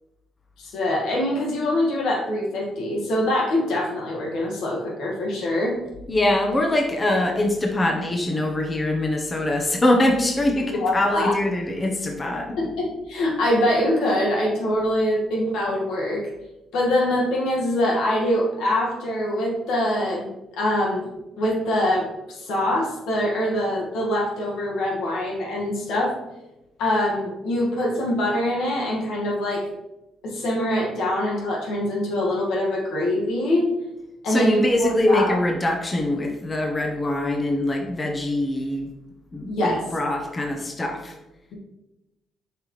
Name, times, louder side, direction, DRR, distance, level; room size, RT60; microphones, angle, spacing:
voice 1, 0.6-5.8 10.7-11.3 12.6-16.2 16.7-20.3 20.6-21.1 21.4-26.2 26.8-29.6 30.2-33.6 34.2-35.4 39.5-39.8, left 1 dB, 85° left, -2 dB, 1.8 m, -24 dB
voice 2, 6.1-12.7 34.3-38.9 39.3-41.1, left 1 dB, 25° left, 1 dB, 1.0 m, -23 dB
6.3 x 5.1 x 3.2 m, 0.96 s
cardioid pair, 90°, 0 cm